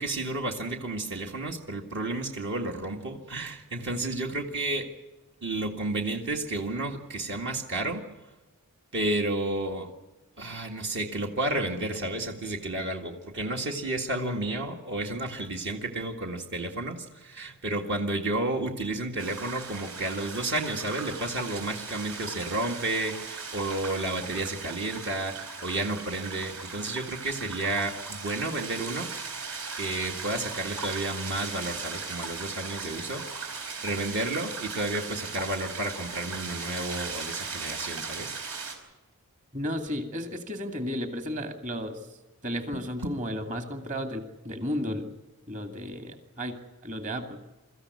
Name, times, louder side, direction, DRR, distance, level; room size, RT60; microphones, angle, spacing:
voice 1, 0.0-4.9 5.4-8.0 8.9-9.9 10.4-29.1 29.7-33.5 33.8-38.3, right 2 dB, 55° right, 2 dB, 2.0 m, -31 dB
sound 1, 19.2-38.7, right 4 dB, 75° right, 4.6 m, -38 dB
voice 2, 39.5-42.0 42.4-45.1 45.5-47.4, equal, 35° right, 6 dB, 2.3 m, -33 dB
24.0 x 14.0 x 9.6 m, 1.1 s
head